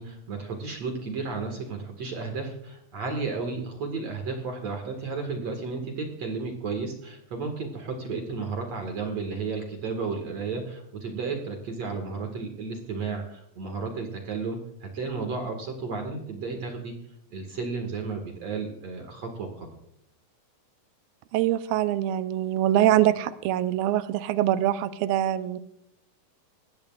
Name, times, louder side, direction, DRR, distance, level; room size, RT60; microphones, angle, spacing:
voice 1, 0.0-16.9 17.3-19.7, right 4 dB, 50° right, 3 dB, 2.7 m, -33 dB
voice 2, 21.3-25.6, right 12 dB, 85° right, 11 dB, 2.5 m, -24 dB
20.5 x 16.5 x 2.5 m, 0.74 s
omnidirectional pair, 4.2 m